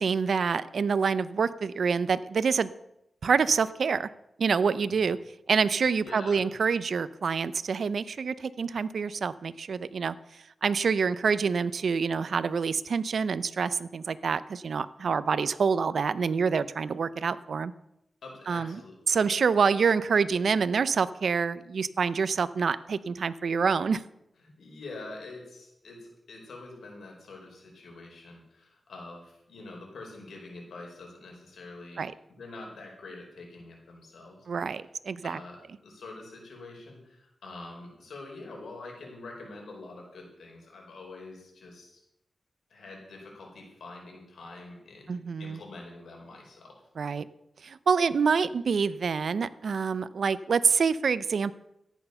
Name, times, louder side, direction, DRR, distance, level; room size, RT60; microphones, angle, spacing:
voice 1, 0.0-2.7 3.2-4.1 4.4-5.2 5.5-10.1 10.6-17.7 18.5-18.8 19.1-24.0 32.0-32.1 34.5-35.4 45.1-45.6 47.0-47.3 47.6-51.5, right 5 dB, 70° right, 15 dB, 0.6 m, -26 dB
voice 2, 6.0-6.4 18.2-19.4 24.4-34.5 35.2-42.0 42.7-46.8, left 2 dB, 85° left, 0 dB, 4.8 m, -45 dB
14.0 x 9.1 x 6.8 m, 0.81 s
wide cardioid pair, 90°, 0 cm